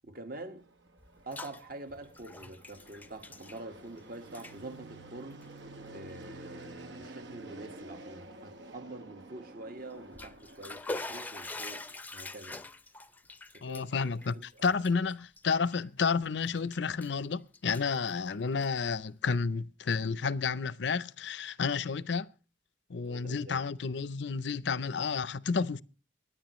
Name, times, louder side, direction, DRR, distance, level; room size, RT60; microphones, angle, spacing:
voice 1, 0.0-0.7 1.2-5.5 5.9-11.9 12.1-12.7 13.5-14.7 23.1-23.7, right 2 dB, 50° right, 1.6 m, -46 dB
Fixed-wing aircraft airplane, 0.6-10.8, right 2 dB, 70° right, 1.1 m, -49 dB
Bathtub (filling or washing), 1.0-1.6 1.9-4.0 4.3-4.6 5.3-5.5 6.1-6.2 6.6-6.7 9.9-16.0 16.4-17.2 17.5-18.9, left 2 dB, 10° left, 0.5 m, -44 dB
voice 2, 13.6-22.3 22.9-25.8, left 5 dB, 70° left, 0.6 m, -31 dB
24.0 x 10.0 x 3.1 m
head